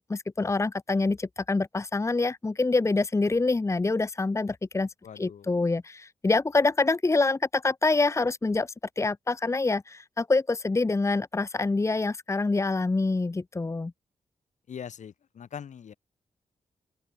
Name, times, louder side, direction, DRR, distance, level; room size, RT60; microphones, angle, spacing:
voice 1, 0.0-4.9 5.2-13.9, left 3 dB, 25° left, 1.0 m, -26 dB
voice 2, 5.0-5.6 14.7-15.9, left 8 dB, 75° left, 3.6 m, -42 dB
open air
cardioid pair, 85°, 12 cm